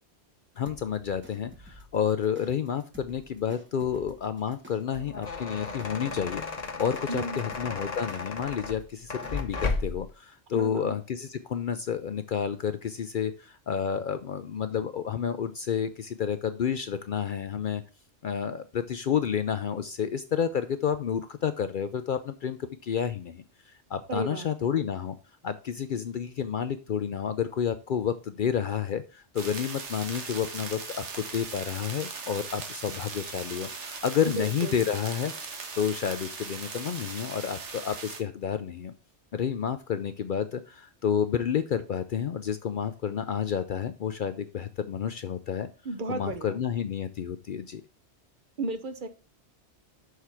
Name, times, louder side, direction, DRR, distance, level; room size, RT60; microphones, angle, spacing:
voice 1, 0.6-6.4 6.8-17.8 18.2-25.1 25.4-38.9 39.3-45.7 46.1-47.8, left 8 dB, 60° left, 11 dB, 0.6 m, -30 dB
sound 1, 0.7-9.8, right 1 dB, 10° right, 0.8 m, -52 dB
sound 2, 4.9-10.1, left 4 dB, 40° left, 1.0 m, -34 dB
voice 2, 7.1-7.5 10.5-10.9 24.1-24.7 34.2-34.9 45.8-46.6 48.6-49.1, right 2 dB, 50° right, 9 dB, 0.9 m, -34 dB
sound 3, 29.4-38.2, right 4 dB, 90° right, 1.5 m, -39 dB
6.6 x 4.7 x 5.7 m, 0.34 s
omnidirectional pair, 1.2 m